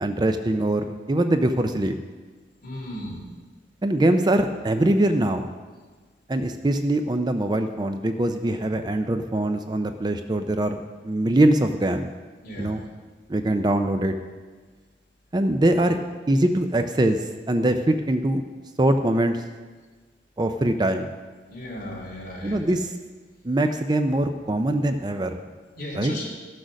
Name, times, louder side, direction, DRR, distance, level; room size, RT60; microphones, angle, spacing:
voice 1, 0.0-1.9 3.8-5.5 6.3-10.8 11.0-12.1 12.6-12.8 13.3-14.1 15.3-16.0 16.3-18.4 18.8-19.4 20.4-21.1 22.4-22.9 23.4-25.4 25.9-26.1, right 1 dB, 25° right, 7 dB, 0.4 m, -22 dB
voice 2, 2.6-3.2 12.4-12.8 21.5-22.8 25.7-26.3, left 1 dB, 50° left, -3 dB, 3.3 m, -35 dB
14.0 x 6.3 x 6.3 m, 1.4 s
head